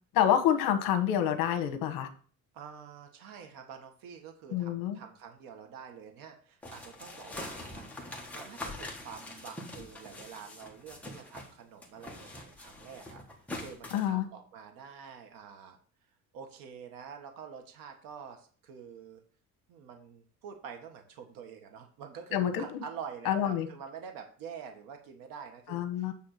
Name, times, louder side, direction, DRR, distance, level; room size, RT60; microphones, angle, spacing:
voice 1, 0.1-2.1 4.5-5.0 13.9-14.2 22.3-22.6 23.2-23.7 25.7-26.1, left 10 dB, 75° left, 7 dB, 1.2 m, -27 dB
voice 2, 2.5-8.0 8.3-15.8 16.3-19.2 19.7-26.1, right 7 dB, 75° right, 5 dB, 1.4 m, -47 dB
sound 1, 6.6-11.5 11.8-14.1, left 2 dB, 5° left, 1.3 m, -44 dB
8.6 x 3.5 x 6.6 m, 0.44 s
cardioid pair, 175°, 34 cm